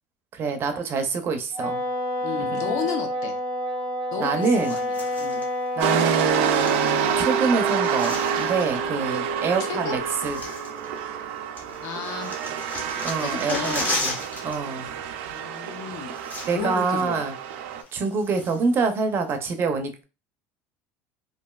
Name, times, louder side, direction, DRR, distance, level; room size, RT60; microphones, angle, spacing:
voice 1, 0.3-1.8 2.5-2.6 4.2-4.8 5.8-10.4 13.0-14.1 14.4-14.9 16.5-17.3 17.9-20.0, right 4 dB, 40° right, 6 dB, 0.5 m, -26 dB
Wind instrument woodwind instrument, 1.5-6.1, left 1 dB, 80° left, 1.1 m, -28 dB
voice 2, 2.2-3.4 4.1-5.4 9.6-10.0 11.8-12.4 13.2-14.0 15.3-16.1 16.5-17.2, left 7 dB, 60° left, 5 dB, 0.7 m, -33 dB
sound 1, 4.4-5.5 6.3-7.3 7.6-8.8 9.7-9.8 10.1-11.3 11.6-14.6 14.8-15.0 15.8-15.9 16.1-16.8 17.2-17.3 17.8-18.8 19.3-19.4, left 2 dB, 25° left, 1.0 m, -35 dB
sound 2, 5.8-17.8, right 7 dB, 90° right, 0.4 m, -27 dB
3.0 x 2.5 x 2.3 m, 0.31 s
cardioid pair, 130°, 7 cm